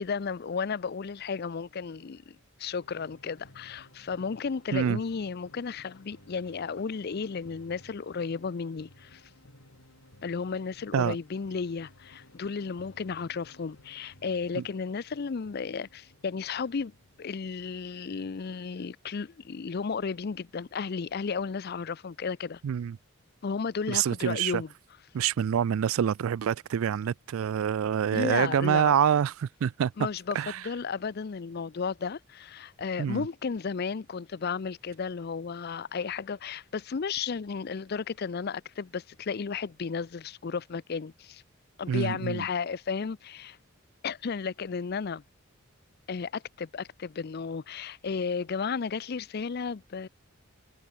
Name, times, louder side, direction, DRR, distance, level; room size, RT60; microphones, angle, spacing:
voice 1, 0.0-9.2 10.2-16.9 17.2-22.6 23.4-24.7 28.1-29.0 30.0-41.4 41.8-43.6 44.0-45.2 46.1-50.1, left 5 dB, 45° left, 0.5 m, -33 dB
sound 1, 2.8-17.3, left 1 dB, 85° left, 5.5 m, -57 dB
voice 2, 22.6-23.0 23.9-24.6 25.1-29.9 30.3-30.6 33.0-33.3 41.9-42.5, right 8 dB, 75° right, 0.3 m, -26 dB
head